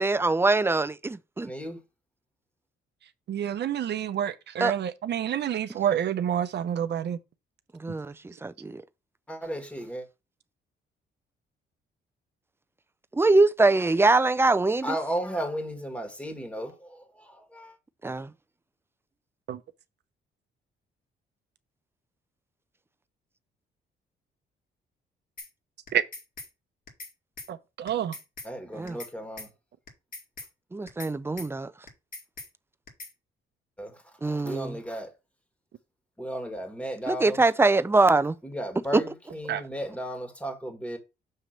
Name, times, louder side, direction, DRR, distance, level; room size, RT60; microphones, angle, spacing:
voice 1, 0.0-1.5 4.6-4.7 7.8-8.8 13.1-15.0 18.0-18.3 28.8-29.0 30.7-31.7 34.2-34.8 37.1-38.4, right 3 dB, 10° right, 0.5 m, -23 dB
voice 2, 1.4-1.8 9.3-10.1 14.8-17.8 28.4-29.5 33.8-35.1 36.2-37.4 38.4-41.0, equal, 5° left, 1.8 m, -35 dB
voice 3, 3.3-7.2 19.5-19.6 25.9-26.0 27.5-28.2 39.5-39.6, right 9 dB, 60° right, 0.8 m, -28 dB
sound 1, 25.4-25.5 25.9-26.5 26.9-27.1 27.4-27.5 27.9-28.5 28.9-29.1 29.4-29.5 29.9-30.5 30.9-31.1 31.4-31.5 31.9-32.5 32.9-33.1, left 3 dB, 45° left, 2.1 m, -41 dB
6.6 x 3.1 x 5.8 m
cardioid pair, 90°, 20 cm